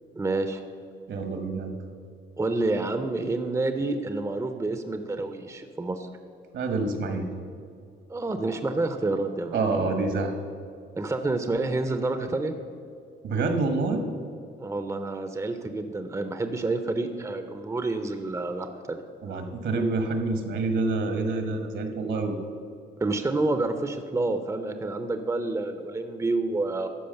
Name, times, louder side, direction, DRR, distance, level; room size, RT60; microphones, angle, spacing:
voice 1, 0.1-0.6 2.4-6.1 8.1-9.6 11.0-12.6 14.6-19.0 23.0-26.9, right 2 dB, 15° right, 8 dB, 0.6 m, -28 dB
voice 2, 1.1-1.8 6.5-7.3 9.5-10.3 13.2-14.0 19.2-22.4, right 3 dB, 65° right, 6 dB, 1.4 m, -27 dB
13.0 x 4.9 x 6.7 m, 2.3 s
cardioid pair, 90°, 20 cm